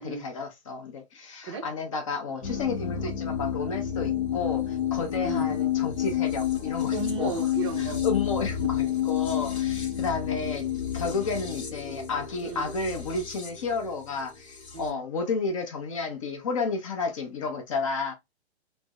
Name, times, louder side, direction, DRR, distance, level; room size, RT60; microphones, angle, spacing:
voice 1, 0.0-7.4 7.8-10.7 10.9-18.1, left 4 dB, 30° left, 0.5 m, -32 dB
voice 2, 2.3-2.9 5.2-5.5 6.9-8.0 12.4-12.7 14.7-15.0, right 4 dB, 25° right, 0.5 m, -35 dB
sound 1, 2.4-14.9, left 10 dB, 80° left, 0.9 m, -30 dB
2.5 x 2.0 x 3.4 m
figure-of-eight pair, 130°, 33 cm